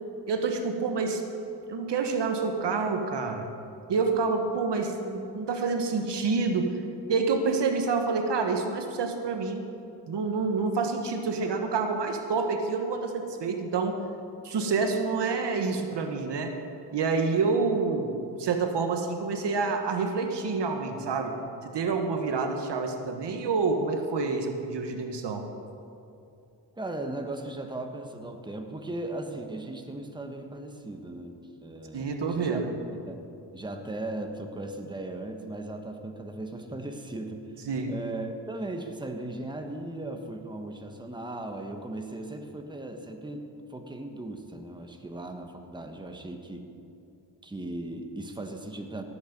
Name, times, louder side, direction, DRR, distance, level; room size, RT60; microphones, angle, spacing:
voice 1, 0.3-1.2 1.7-3.5 3.9-6.8 7.1-9.6 10.1-14.0 14.4-16.5 16.9-25.4 31.9-32.7 37.7-37.9, right 4 dB, 70° right, 5 dB, 1.4 m, -28 dB
voice 2, 26.7-32.7 33.1-33.2 33.5-37.4 37.9-46.7 47.4-49.0, right 2 dB, 10° right, 4 dB, 1.3 m, -37 dB
17.5 x 8.7 x 5.3 m, 2.6 s
cardioid pair, 75°, 44 cm